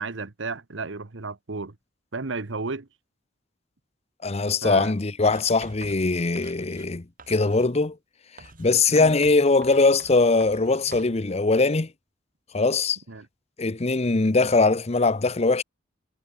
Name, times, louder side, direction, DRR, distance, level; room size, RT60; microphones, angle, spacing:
voice 1, 0.0-1.7 2.1-2.9 4.6-4.9 8.9-9.2 13.1-13.3, right 3 dB, 75° right, 1.1 m, -33 dB
voice 2, 4.2-8.0 8.6-11.9 12.5-13.0 13.6-15.6, left 3 dB, 35° left, 0.8 m, -21 dB
Writing, 5.2-6.9 7.2-7.7 8.4-11.2, right 3 dB, 45° right, 4.3 m, -47 dB
head